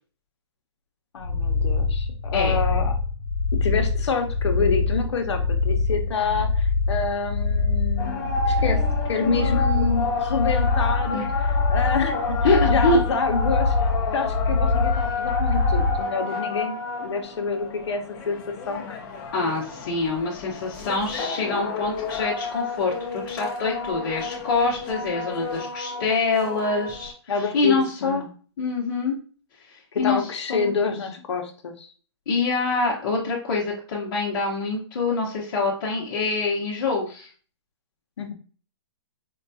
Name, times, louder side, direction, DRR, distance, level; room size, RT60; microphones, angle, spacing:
voice 1, 1.1-2.9 3.6-8.8 9.1-12.4 12.7-13.7 14.1-19.0 27.3-28.2 29.9-31.9 38.2-38.3, left 4 dB, 70° left, 5 dB, 0.8 m, -27 dB
sound 1, 1.2-16.0, left 3 dB, 55° right, 0.9 m, -24 dB
sound 2, 8.0-27.1, left 3 dB, 20° left, 0.6 m, -31 dB
voice 2, 12.4-13.0 19.3-28.2 28.6-29.2 30.0-30.7 32.3-37.3, left 3 dB, 45° left, -6 dB, 0.9 m, -25 dB
4.5 x 2.3 x 2.7 m, 0.40 s
hypercardioid pair, 160°, 15 cm